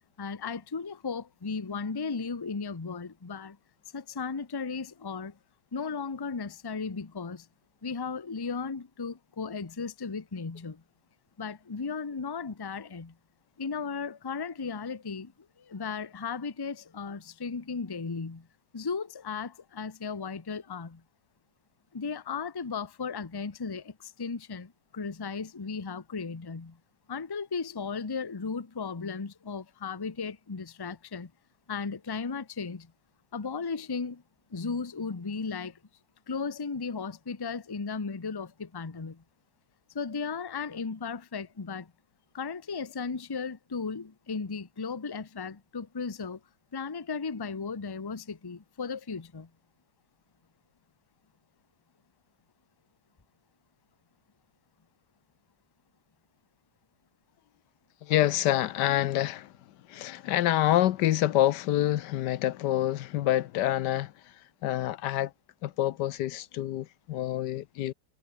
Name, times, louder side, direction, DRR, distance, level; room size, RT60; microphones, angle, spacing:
voice 1, 0.2-3.6 3.9-5.4 5.7-7.5 7.8-10.8 11.4-13.1 13.6-15.3 15.6-18.5 18.7-21.0 21.9-26.8 27.1-31.3 31.7-32.9 33.3-34.2 34.5-35.8 36.3-39.2 39.9-41.9 42.3-46.4 46.7-49.5, left 5 dB, 20° left, 0.7 m, -35 dB
voice 2, 58.0-59.5 59.9-64.1 64.6-65.3 65.6-67.9, left 13 dB, 80° left, 1.3 m, -27 dB
omnidirectional pair, 1.8 m